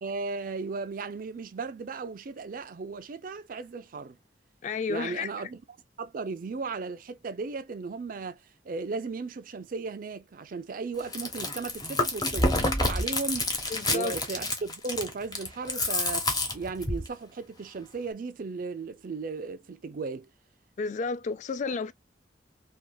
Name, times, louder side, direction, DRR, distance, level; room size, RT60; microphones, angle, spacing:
voice 1, 0.0-4.2 4.9-5.6 6.0-13.5 13.9-16.3 16.5-20.3, right 4 dB, 50° right, 0.4 m, -36 dB
voice 2, 4.6-5.3 13.7-14.1 20.8-21.9, left 4 dB, 45° left, 0.3 m, -31 dB
Chewing mastication, 11.0-17.1, left 2 dB, 25° left, 0.8 m, -28 dB
3.3 x 2.3 x 2.2 m
head